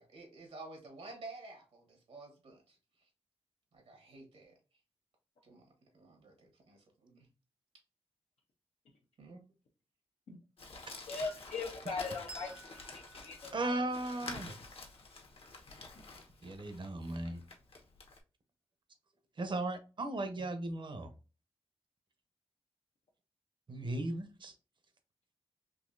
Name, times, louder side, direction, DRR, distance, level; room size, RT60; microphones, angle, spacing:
voice 1, 0.0-3.1 3.7-4.6 5.4-5.7 5.9-7.3 9.2-9.4 20.4-20.5, right 3 dB, 80° right, 2 dB, 1.4 m, -52 dB
Crumpling crinkling, 10.6-18.2, left 3 dB, 65° left, 0.9 m, -49 dB
voice 2, 11.1-13.7, left 4 dB, 85° left, -1 dB, 0.6 m, -40 dB
Bell, 12.3-15.4, right 2 dB, 10° right, 0.6 m, -55 dB
voice 3, 13.5-14.5 16.4-17.4 19.4-21.1 23.7-24.5, right 2 dB, 50° right, 8 dB, 0.8 m, -36 dB
3.9 x 2.7 x 2.5 m, 0.33 s
cardioid pair, 75°, 11 cm